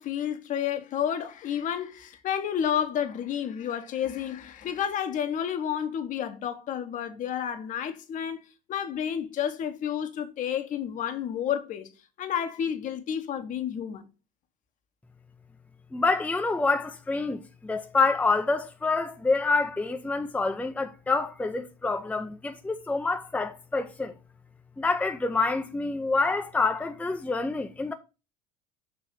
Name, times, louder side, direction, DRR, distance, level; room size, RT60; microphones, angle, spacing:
voice 1, 0.0-8.4 8.7-11.9 12.2-14.1, left 9 dB, 45° left, 1.0 m, -30 dB
voice 2, 15.9-24.1 24.8-27.9, left 3 dB, 5° left, 0.6 m, -27 dB
6.8 x 2.9 x 5.5 m
hypercardioid pair, 70°, 18 cm